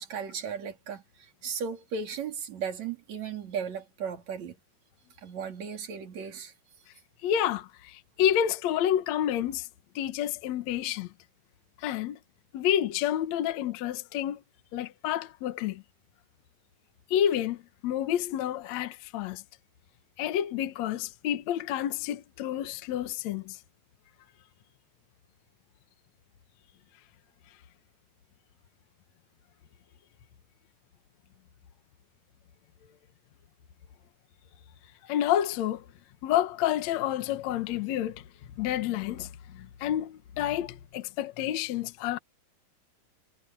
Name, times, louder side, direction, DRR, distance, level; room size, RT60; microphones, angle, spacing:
voice 1, 0.0-4.6 5.2-6.5, right 6 dB, 50° right, 4.5 m, -36 dB
voice 2, 7.2-9.7 10.0-11.1 11.8-12.2 12.5-14.4 14.7-15.8 17.1-19.4 20.2-23.6 35.0-35.9 36.2-38.2 38.6-42.2, left 11 dB, 60° left, 2.1 m, -29 dB
omnidirectional pair, 4.1 m